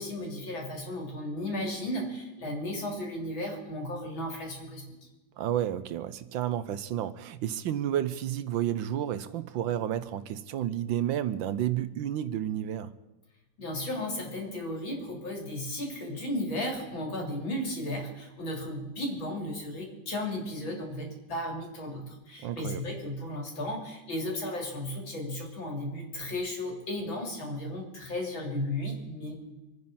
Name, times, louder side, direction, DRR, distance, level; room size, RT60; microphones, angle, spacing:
voice 1, 0.0-4.9 13.6-29.3, left 1 dB, 70° left, 4.3 m, -34 dB
voice 2, 5.4-12.9 22.4-22.8, right 11 dB, 75° right, 1.4 m, -31 dB
26.5 x 9.6 x 5.6 m
omnidirectional pair, 2.2 m